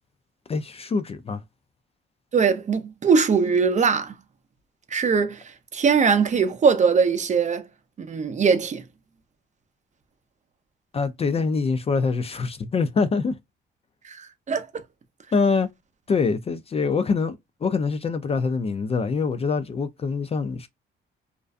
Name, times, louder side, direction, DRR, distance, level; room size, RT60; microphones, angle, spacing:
voice 1, 0.5-1.4 10.9-13.4 15.3-15.7 16.1-17.4 17.6-20.7, left 4 dB, 30° left, 0.3 m, -24 dB
voice 2, 2.3-4.1 4.9-7.7 8.0-8.8 14.0-14.8, right 5 dB, 35° right, 0.5 m, -21 dB
2.5 x 2.2 x 2.4 m
cardioid pair, 90°, 20 cm